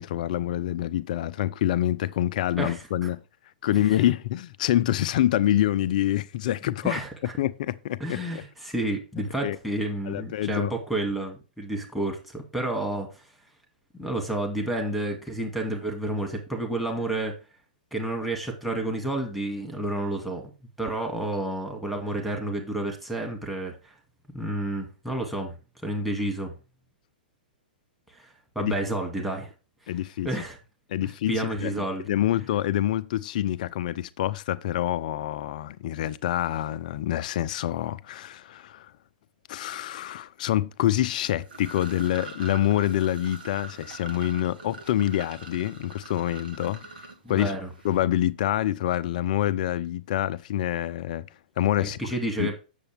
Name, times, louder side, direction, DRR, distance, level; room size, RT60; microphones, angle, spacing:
voice 1, 0.0-3.2 3.6-7.0 7.4-8.4 9.4-9.6 10.1-10.7 28.6-28.7 29.9-30.3 30.9-38.9 39.5-46.8 47.3-47.6 47.8-51.3 51.6-52.1 52.4-52.5, left 12 dB, 55° left, 0.6 m, -26 dB
voice 2, 2.6-3.1 3.9-4.0 6.8-7.3 8.0-13.1 14.0-17.3 17.9-20.5 20.8-23.9 24.3-25.6 25.8-26.5 28.1-28.3 28.6-29.5 30.2-30.6 31.3-32.1 47.2-47.7 51.8-52.5, right 1 dB, ahead, 2.2 m, -30 dB
sound 1, 41.2-48.0, right 3 dB, 75° right, 1.8 m, -43 dB
8.1 x 6.9 x 3.4 m
hypercardioid pair, 120°, 5 cm